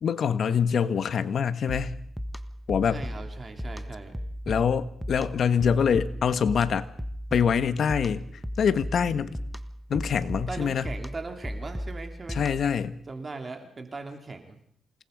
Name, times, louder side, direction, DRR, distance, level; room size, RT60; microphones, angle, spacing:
voice 1, 0.0-2.0 2.7-3.0 4.5-6.9 7.3-8.2 8.6-9.4 9.9-10.9 12.3-13.0, left 7 dB, 65° left, 12 dB, 1.5 m, -25 dB
sound 1, 1.7-12.8, equal, 5° right, 1.4 m, -36 dB
voice 2, 2.9-4.2 10.5-12.4 13.1-14.6, right 3 dB, 30° right, 5 dB, 3.1 m, -39 dB
28.0 x 19.0 x 5.3 m, 0.65 s
cardioid pair, 95°, 0 cm